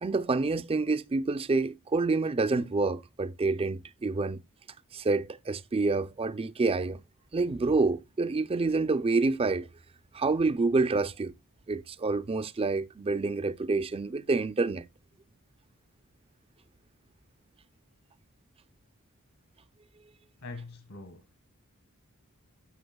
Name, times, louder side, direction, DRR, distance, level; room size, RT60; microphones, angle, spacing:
voice 1, 0.0-4.4 4.9-7.0 7.3-9.7 10.1-11.3 11.7-14.9, right 3 dB, 25° right, 0.4 m, -28 dB
voice 2, 20.4-21.4, left 3 dB, 75° left, 1.8 m, -43 dB
13.0 x 6.9 x 2.3 m
head